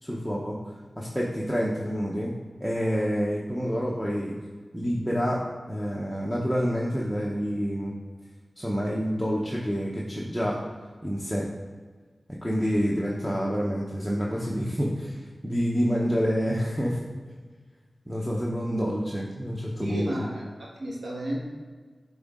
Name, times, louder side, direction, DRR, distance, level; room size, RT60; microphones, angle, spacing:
voice 1, 0.0-2.3 2.6-4.3 4.7-7.9 8.6-10.6 11.0-11.5 12.4-17.0 18.1-20.1, equal, ahead, -4 dB, 0.8 m, -28 dB
voice 2, 19.8-21.4, equal, 85° right, -3 dB, 1.4 m, -32 dB
9.3 x 3.6 x 3.7 m, 1.5 s
wide cardioid pair, 70°, 0 cm